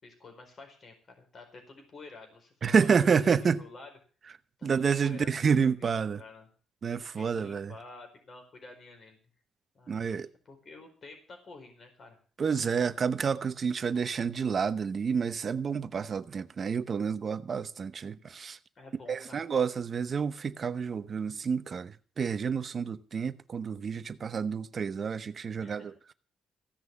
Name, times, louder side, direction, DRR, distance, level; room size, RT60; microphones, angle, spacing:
voice 1, 0.0-3.9 4.6-6.5 7.1-9.2 9.7-12.2 18.7-19.5 25.6-25.9, left 3 dB, 40° left, 4.6 m, -50 dB
voice 2, 2.6-3.6 4.6-6.2 6.8-7.7 9.9-10.3 12.4-18.6 19.1-25.9, right 6 dB, 40° right, 0.9 m, -29 dB
16.0 x 6.2 x 9.5 m
cardioid pair, 140°, 0 cm